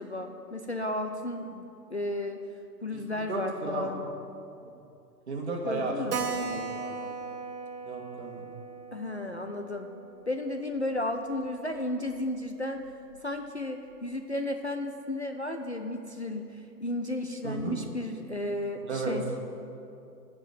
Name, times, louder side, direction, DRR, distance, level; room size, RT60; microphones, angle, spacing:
voice 1, 0.0-2.4 2.8-4.0 5.6-6.2 8.9-9.9 10.3-12.8 13.2-19.3, left 1 dB, 45° left, 5 dB, 0.4 m, -33 dB
voice 2, 2.9-3.9 5.3-5.9 6.4-7.1 7.8-8.5 17.4-17.8 18.8-19.1, right 3 dB, 40° right, 0 dB, 1.6 m, -34 dB
Keyboard (musical), 6.1-11.2 11.4-11.5 11.8-11.9 12.2-12.3 12.8-13.2, right 5 dB, 65° right, 1.4 m, -38 dB
11.5 x 5.1 x 8.5 m, 2.6 s
hypercardioid pair, 165°, 50 cm